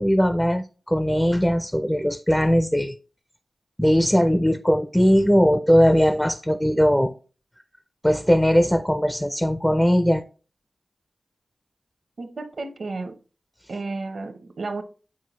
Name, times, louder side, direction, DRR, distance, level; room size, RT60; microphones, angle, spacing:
voice 1, 0.0-2.9 3.8-7.1 8.0-10.2, equal, 5° left, 0.4 m, -19 dB
voice 2, 12.2-13.2 13.7-14.8, right 3 dB, 65° right, 0.9 m, -32 dB
8.5 x 4.3 x 3.1 m
wide cardioid pair, 65°, 0 cm